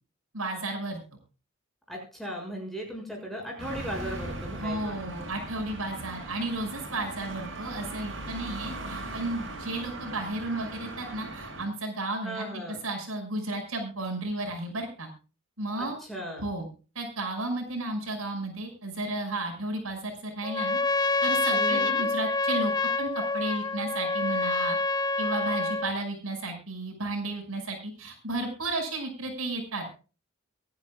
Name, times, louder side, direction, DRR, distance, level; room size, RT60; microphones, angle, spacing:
voice 1, 0.3-1.0 4.6-12.5 12.8-15.1 15.6-16.0 16.4-16.7 16.9-20.8 21.2-22.7 23.0-24.8 25.2-29.8, right 2 dB, 90° right, 2 dB, 6.0 m, -33 dB
voice 2, 1.9-5.0 12.2-12.8 15.8-16.5 21.5-22.0, equal, ahead, 0 dB, 6.6 m, -37 dB
sound 1, 3.6-11.7, right 2 dB, 65° right, 5.7 m, -39 dB
Trumpet, 20.4-25.9, left 3 dB, 20° left, 0.6 m, -27 dB
24.5 x 10.5 x 2.4 m, 0.34 s
head